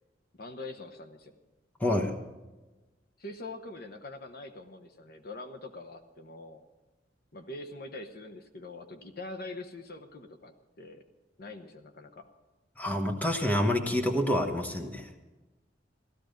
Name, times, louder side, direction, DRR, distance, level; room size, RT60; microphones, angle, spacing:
voice 1, 0.4-1.3 3.2-6.6 7.3-11.0 11.4-12.3, left 2 dB, 55° left, 6 dB, 1.0 m, -44 dB
voice 2, 1.8-2.1 12.8-15.1, left 1 dB, 10° left, 3 dB, 1.2 m, -28 dB
16.0 x 13.5 x 5.2 m, 1.2 s
head